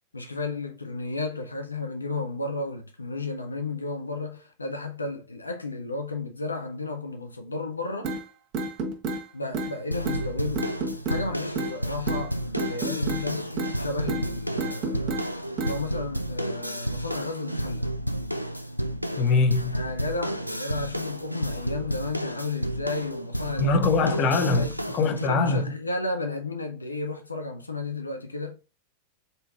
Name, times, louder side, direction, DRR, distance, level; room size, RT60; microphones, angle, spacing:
voice 1, 0.1-8.2 9.3-10.7 11.1-15.3 15.6-17.9 19.7-23.9 24.3-24.8 25.3-28.6, left 3 dB, 80° left, 0.5 m, -33 dB
sound 1, 8.0-8.2 8.5-9.2 9.5-9.7 10.1-10.2 10.6-11.2 11.6-11.8 12.1-12.2 12.6-13.3 13.6-13.8 14.1-14.3 14.6-15.3 15.6-15.8, right 3 dB, 35° right, 1.3 m, -29 dB
sound 2, 9.9-25.3, right 1 dB, 90° right, 0.4 m, -31 dB
voice 2, 19.2-19.8 23.6-24.7 24.9-25.6, left 3 dB, 35° left, 0.7 m, -22 dB
4.0 x 3.8 x 2.4 m
figure-of-eight pair, 90°, 0 cm